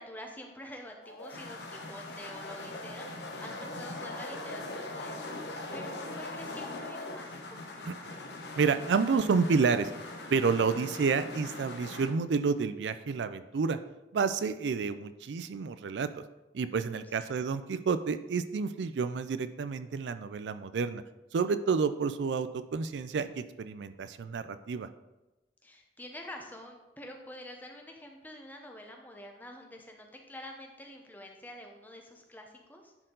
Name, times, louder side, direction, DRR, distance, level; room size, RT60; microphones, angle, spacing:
voice 1, 0.0-7.9 17.2-17.4 25.6-32.9, left 1 dB, 10° left, 2 dB, 0.8 m, -47 dB
sound 1, 1.0-12.1, left 2 dB, 75° left, 0.9 m, -41 dB
voice 2, 8.6-9.9 10.3-13.8 14.1-16.2 16.5-21.0 21.3-24.9, right 5 dB, 85° right, 12 dB, 0.4 m, -29 dB
10.0 x 4.5 x 3.8 m, 1.0 s
head